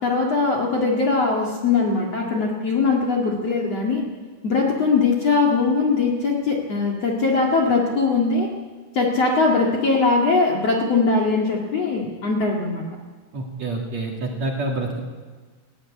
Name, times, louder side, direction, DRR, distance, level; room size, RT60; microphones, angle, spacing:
voice 1, 0.0-4.0 4.4-8.5 8.9-12.8, left 4 dB, 45° left, -1 dB, 2.4 m, -21 dB
voice 2, 13.3-15.0, right 2 dB, 45° right, 0 dB, 2.9 m, -27 dB
19.5 x 16.0 x 8.4 m, 1.4 s
omnidirectional pair, 5.1 m